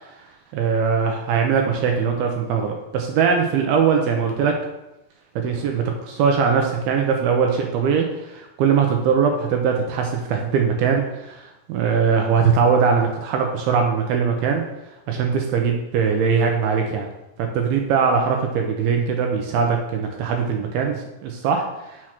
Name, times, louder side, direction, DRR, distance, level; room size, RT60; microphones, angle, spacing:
voice 1, 0.5-4.5 5.4-14.6 15.1-17.1 17.4-22.1, right 6 dB, 80° right, 3 dB, 2.2 m, -21 dB
6.3 x 4.5 x 5.9 m, 0.94 s
omnidirectional pair, 5.1 m